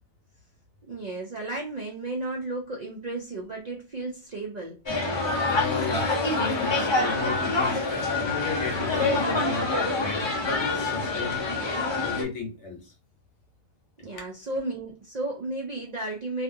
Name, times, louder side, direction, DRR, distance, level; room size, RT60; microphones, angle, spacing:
voice 1, 0.9-4.8 14.0-16.4, right 2 dB, 60° right, -1 dB, 0.4 m, -33 dB
sound 1, 4.9-12.2, left 3 dB, 35° left, 0.4 m, -26 dB
voice 2, 5.4-7.8 8.1-11.4 12.0-12.9, left 4 dB, 60° left, 3 dB, 1.0 m, -34 dB
2.7 x 2.5 x 2.5 m, 0.30 s
omnidirectional pair, 1.4 m